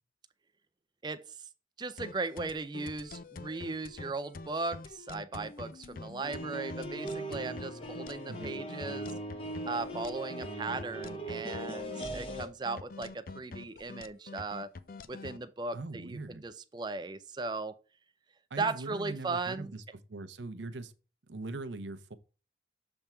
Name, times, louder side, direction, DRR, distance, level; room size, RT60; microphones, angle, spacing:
voice 1, 1.0-1.5 1.8-9.1 9.7-14.7 15.1-17.7 18.6-19.8, right 3 dB, 25° right, 0.4 m, -37 dB
sound 1, 2.0-15.4, left 3 dB, 50° left, 0.4 m, -46 dB
sound 2, 6.2-12.5, right 1 dB, 30° left, 0.9 m, -39 dB
voice 2, 8.3-8.6 15.7-16.4 18.5-19.8 20.1-20.9 21.3-22.1, right 2 dB, 85° right, 0.7 m, -41 dB
7.1 x 3.5 x 4.3 m
head